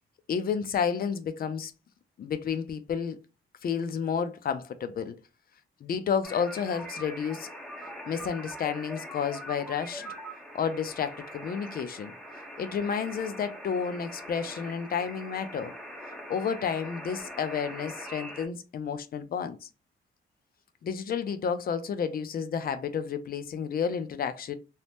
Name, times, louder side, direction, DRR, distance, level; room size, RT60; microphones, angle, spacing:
voice 1, 0.3-1.7 2.2-3.2 3.6-5.2 5.8-7.5 8.1-10.1 10.5-12.1 12.6-15.7 16.3-19.7 20.8-24.6, left 7 dB, 45° left, 0.4 m, -31 dB
sound 1, 6.2-18.5, equal, 5° left, 0.7 m, -42 dB
2.7 x 2.0 x 3.3 m
wide cardioid pair, 135°, 21 cm